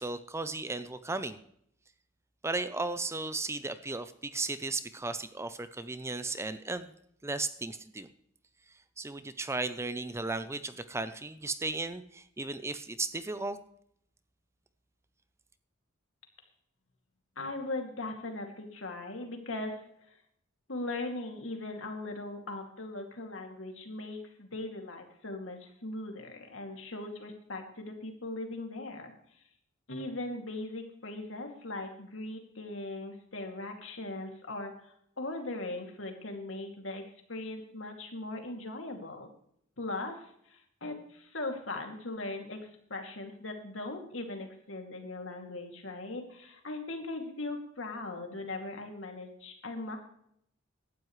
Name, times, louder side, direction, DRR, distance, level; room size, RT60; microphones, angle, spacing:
voice 1, 0.0-1.4 2.4-6.9 7.2-8.1 9.0-13.6, right 3 dB, 15° right, 12 dB, 0.6 m, -35 dB
voice 2, 17.4-19.8 20.7-29.1 29.9-39.3 39.8-42.6 42.9-50.0, left 2 dB, 70° left, 3 dB, 2.6 m, -39 dB
17.5 x 12.0 x 3.2 m, 0.68 s
head